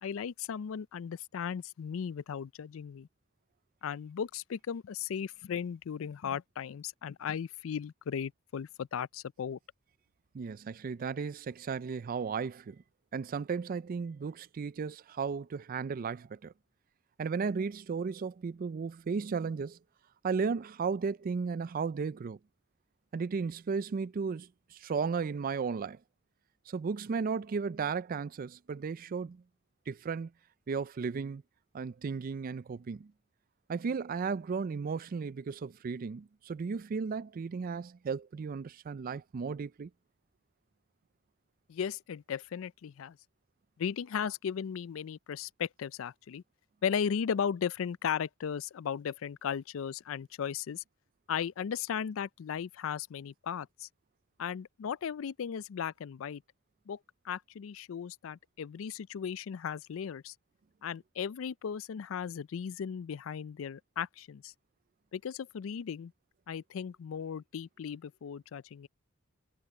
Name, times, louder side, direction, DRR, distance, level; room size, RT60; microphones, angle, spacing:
voice 1, 0.0-3.1 3.8-9.6 41.7-43.2 43.8-46.4 46.8-50.8 51.3-53.9 54.4-56.4 56.9-57.0 57.2-60.3 60.8-64.5 65.1-66.1 66.5-68.9, left 7 dB, 75° left, 0.4 m, -36 dB
voice 2, 10.3-12.8 13.1-16.5 17.2-19.8 20.2-22.4 23.1-26.0 26.7-29.4 29.9-30.3 30.7-31.4 31.7-33.1 33.7-39.9, right 5 dB, 45° right, 0.4 m, -35 dB
head